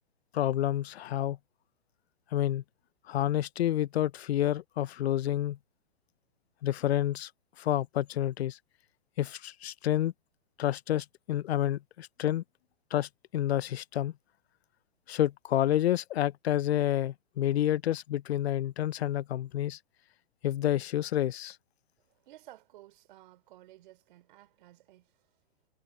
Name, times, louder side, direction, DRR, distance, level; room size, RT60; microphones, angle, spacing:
voice 1, 0.3-1.4 2.3-2.6 3.1-5.6 6.6-7.3 7.6-8.6 9.2-10.1 10.6-12.4 12.9-14.1 15.1-19.8 20.4-21.6, left 12 dB, 80° left, 0.6 m, -29 dB
voice 2, 22.3-25.1, right 15 dB, 50° right, 3.9 m, -54 dB
hypercardioid pair, 145°, 32 cm